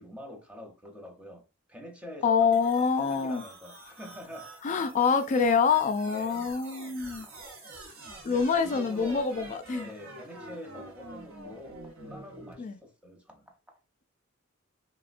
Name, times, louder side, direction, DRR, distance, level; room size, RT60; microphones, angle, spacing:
voice 1, 0.0-1.4 1.7-4.7 6.1-6.6 7.0-7.4 8.1-9.4 9.7-13.8, left 1 dB, 5° right, 0.6 m, -46 dB
voice 2, 2.2-3.4 4.6-7.3 8.2-9.9 12.6-12.8, left 5 dB, 35° left, 0.3 m, -26 dB
sound 1, 2.5-12.5, right 2 dB, 80° right, 0.8 m, -47 dB
3.4 x 2.1 x 2.4 m
head